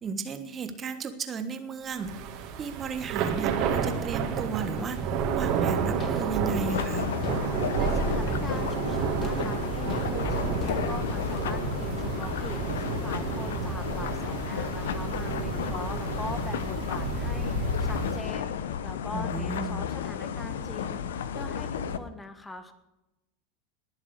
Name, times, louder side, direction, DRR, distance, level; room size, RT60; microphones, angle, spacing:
voice 1, 0.0-2.1 2.6-5.0 5.3-7.1 19.1-19.8, right 5 dB, 30° right, 8 dB, 1.4 m, -34 dB
Thunder / Rain, 2.0-18.3, right 6 dB, 50° right, 2.3 m, -31 dB
sound 1, 3.9-4.3 4.8-12.8, left 6 dB, 35° left, 1.6 m, -43 dB
sound 2, 6.7-22.0, left 8 dB, 70° left, 0.8 m, -32 dB
voice 2, 7.8-17.5 17.8-21.0 21.3-22.7, left 2 dB, 10° left, 9 dB, 1.4 m, -42 dB
20.0 x 7.3 x 6.7 m, 0.97 s
figure-of-eight pair, 85°, 0 cm